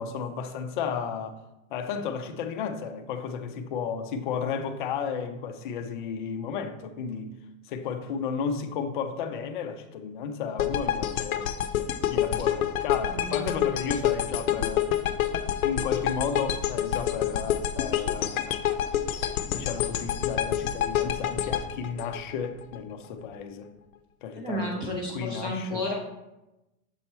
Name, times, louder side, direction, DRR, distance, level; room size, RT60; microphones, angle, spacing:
voice 1, 0.0-1.4 1.7-7.3 7.7-11.5 12.1-14.9 15.6-18.6 19.5-23.7 24.2-25.9, left 6 dB, 35° left, 0.5 m, -33 dB
sound 1, 10.6-22.8, left 10 dB, 75° left, 0.7 m, -27 dB
voice 2, 13.0-13.5 24.3-25.9, left 1 dB, 10° right, 0.5 m, -32 dB
7.0 x 4.3 x 4.4 m
supercardioid pair, 170°, 42 cm